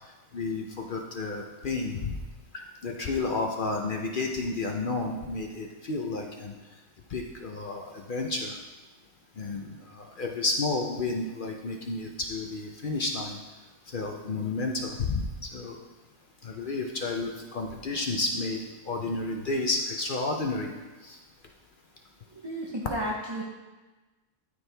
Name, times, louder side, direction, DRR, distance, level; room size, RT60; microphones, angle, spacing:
voice 1, 0.3-2.2 2.5-6.5 7.1-8.6 9.4-13.4 13.9-15.3 15.5-15.8 16.4-18.6 18.8-20.7 21.0-21.2, left 3 dB, 50° left, 2 dB, 0.6 m, -31 dB
voice 2, 22.3-23.4, equal, 25° right, -3 dB, 0.6 m, -33 dB
13.0 x 4.5 x 3.3 m, 1.2 s
omnidirectional pair, 1.5 m